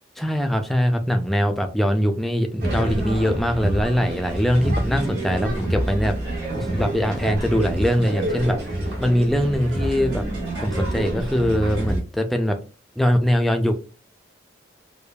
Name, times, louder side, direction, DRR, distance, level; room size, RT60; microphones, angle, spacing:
voice 1, 0.2-6.1 6.5-8.6 9.0-10.2 10.6-12.6 13.0-13.7, equal, ahead, 4 dB, 0.3 m, -22 dB
sound 1, 2.6-12.0, right 1 dB, 65° right, 1.5 m, -27 dB
4.9 x 2.3 x 2.2 m, 0.34 s
head